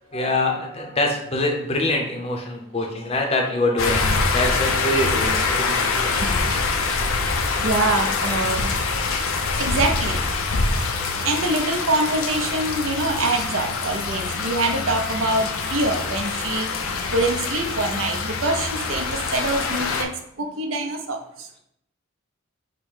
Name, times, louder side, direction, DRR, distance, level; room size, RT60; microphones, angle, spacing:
voice 1, 0.1-5.9, left 2 dB, 30° left, 1 dB, 0.6 m, -24 dB
sound 1, 3.8-20.0, left 4 dB, 80° left, 0.5 m, -25 dB
voice 2, 6.2-6.5 7.6-8.7 9.6-10.2 11.2-16.7 17.1-20.1 20.4-21.5, right 2 dB, 70° right, 3 dB, 0.6 m, -24 dB
5.2 x 2.1 x 4.7 m, 0.72 s
head